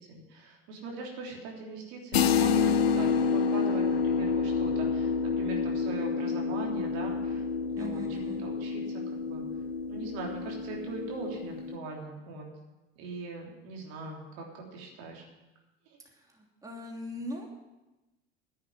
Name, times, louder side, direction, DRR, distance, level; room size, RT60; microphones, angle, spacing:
voice 1, 0.1-7.4 7.7-8.8 9.1-9.4 9.9-12.5 13.0-14.5 14.7-15.2, right 3 dB, 60° right, -1 dB, 3.5 m, -41 dB
sound 1, 2.1-11.8, left 6 dB, 85° left, 0.7 m, -28 dB
voice 2, 7.8-8.4 16.3-17.5, equal, 10° right, -1 dB, 3.0 m, -40 dB
10.5 x 8.5 x 9.5 m, 1.0 s
hypercardioid pair, 75°, 30 cm